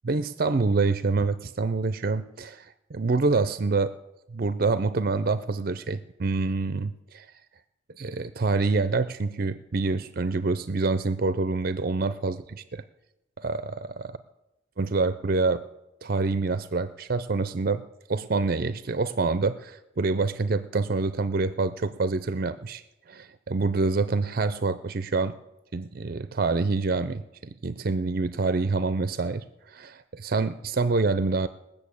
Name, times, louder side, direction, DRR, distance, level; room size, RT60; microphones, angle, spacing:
voice 1, 0.0-3.9 4.3-7.3 8.0-12.8 13.4-14.2 14.8-15.6 16.0-22.8 23.1-25.4 25.7-31.5, right 3 dB, 50° right, 13 dB, 0.5 m, -26 dB
19.5 x 6.9 x 8.4 m, 0.91 s
head